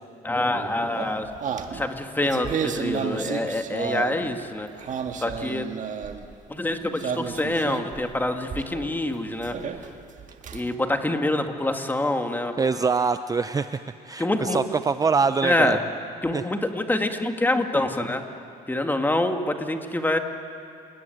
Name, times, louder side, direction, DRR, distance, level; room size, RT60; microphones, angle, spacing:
voice 1, 0.2-1.3 1.7-4.7 5.2-5.7 6.5-9.5 10.5-12.6 14.2-14.6 15.4-15.8 16.2-18.2 18.7-20.2, left 1 dB, 10° left, 5 dB, 2.0 m, -26 dB
sound 1, 0.5-4.4 4.7-6.3 7.0-8.1 8.5-8.9 9.4-10.7, right 7 dB, 50° right, 1.7 m, -32 dB
voice 2, 12.6-15.8 16.3-16.4, right 5 dB, 20° right, 11 dB, 0.6 m, -24 dB
28.5 x 20.0 x 9.3 m, 2.5 s
cardioid pair, 110°, 17 cm